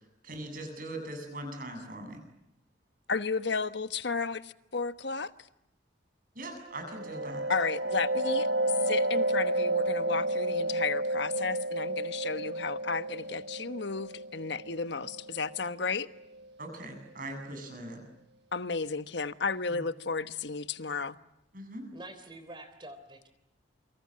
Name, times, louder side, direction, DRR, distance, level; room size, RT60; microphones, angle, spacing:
voice 1, 0.2-2.2 6.3-7.4 16.6-18.0 19.7-19.8 21.5-21.8, right 1 dB, 45° right, 7.9 m, -41 dB
voice 2, 3.1-5.3 7.5-8.5 8.8-16.1 18.5-21.2, left 4 dB, 65° left, 1.2 m, -33 dB
sound 1, 6.7-16.2, right 1 dB, 60° right, 1.3 m, -31 dB
voice 3, 21.9-23.3, right 1 dB, 25° right, 3.4 m, -46 dB
28.5 x 25.0 x 7.6 m
head